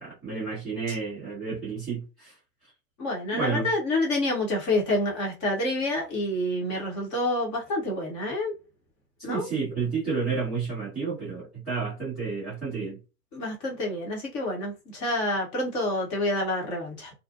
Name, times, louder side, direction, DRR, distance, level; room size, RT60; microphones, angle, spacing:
voice 1, 0.0-2.3 3.3-3.7 9.3-13.0, right 5 dB, ahead, 0.4 m, -31 dB
voice 2, 3.0-8.5 9.2-9.5 13.3-17.1, left 1 dB, 20° left, 0.7 m, -28 dB
2.6 x 2.1 x 2.5 m
hypercardioid pair, 130°, 48 cm